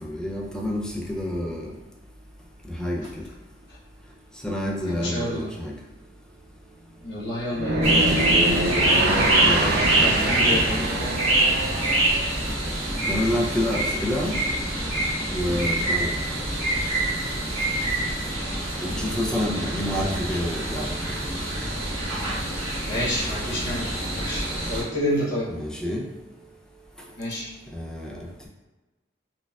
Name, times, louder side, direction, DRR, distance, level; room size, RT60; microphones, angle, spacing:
voice 1, 0.0-1.6 2.8-3.1 4.4-5.7 9.4-10.9 13.1-14.4 15.3-16.1 18.8-20.9 25.5-26.1 27.7-28.2, left 1 dB, 5° left, -2 dB, 0.4 m, -28 dB
voice 2, 4.8-5.5 7.0-7.9 10.0-10.7 15.5-15.7 22.8-25.5 27.2-27.5, left 1 dB, 70° left, -7 dB, 1.1 m, -29 dB
sound 1, 7.5-12.6, right 1 dB, 55° right, 0.4 m, -25 dB
sound 2, 7.8-24.8, right 1 dB, 35° right, 1.2 m, -25 dB
4.4 x 2.3 x 2.3 m, 1.1 s
head